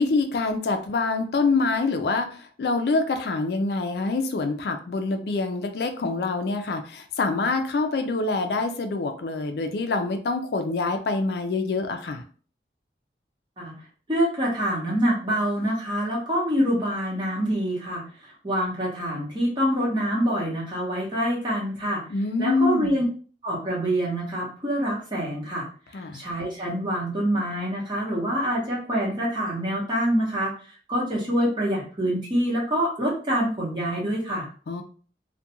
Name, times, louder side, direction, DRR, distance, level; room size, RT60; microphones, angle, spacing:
voice 1, 0.0-12.2 22.1-23.0 25.9-26.2 34.7-34.8, left 3 dB, 65° left, 6 dB, 0.4 m, -25 dB
voice 2, 14.1-22.1 22.4-23.0 23.4-34.5, equal, 25° right, -5 dB, 1.0 m, -26 dB
2.3 x 2.2 x 2.8 m, 0.41 s
head